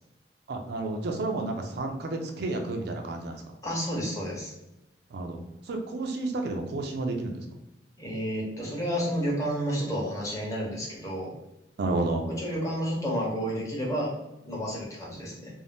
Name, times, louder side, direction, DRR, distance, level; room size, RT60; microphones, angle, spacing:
voice 1, 0.5-3.4 5.1-5.4 5.7-7.4 11.8-12.3, right 2 dB, 60° right, 4 dB, 0.4 m, -31 dB
voice 2, 3.6-4.5 8.0-11.3 12.2-14.1 14.4-15.5, equal, 20° left, -4 dB, 0.8 m, -31 dB
2.6 x 2.0 x 3.3 m, 0.94 s
head